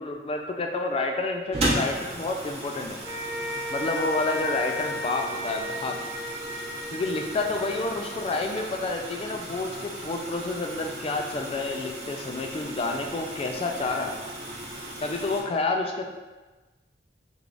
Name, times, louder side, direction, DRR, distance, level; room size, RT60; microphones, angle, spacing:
voice 1, 0.0-3.0 3.7-6.0 6.9-14.2 15.0-16.0, left 3 dB, 35° left, 3 dB, 0.3 m, -29 dB
sound 1, 1.5-15.4, right 1 dB, 35° right, 0.7 m, -36 dB
sound 2, 3.0-9.4, left 1 dB, 70° right, 0.7 m, -35 dB
3.3 x 2.3 x 3.7 m, 1.2 s
head